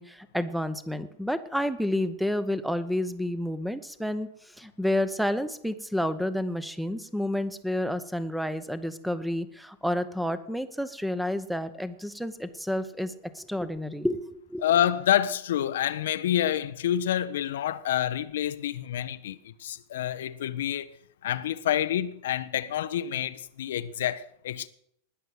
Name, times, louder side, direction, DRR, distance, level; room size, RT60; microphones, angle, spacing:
voice 1, 0.0-4.3 4.6-14.6, left 1 dB, ahead, 0.9 m, -30 dB
voice 2, 14.6-21.0 21.2-24.7, left 11 dB, 60° left, 0.6 m, -28 dB
19.5 x 6.7 x 7.7 m
figure-of-eight pair, 90°, 0 cm